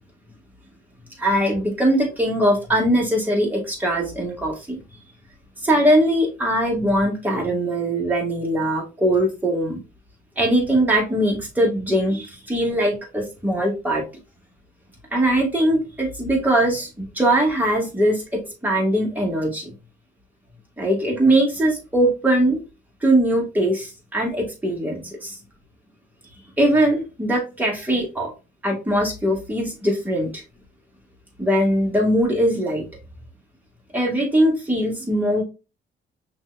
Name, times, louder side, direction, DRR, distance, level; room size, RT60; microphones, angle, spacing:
voice 1, 1.2-4.8 5.6-9.8 10.4-14.0 15.1-19.7 20.8-22.6 23.0-25.4 26.6-28.3 28.6-30.4 31.4-32.8 33.9-35.4, right 1 dB, 10° right, -1 dB, 2.3 m, -21 dB
5.8 x 3.1 x 2.6 m, 0.28 s
cardioid pair, 90°, 20 cm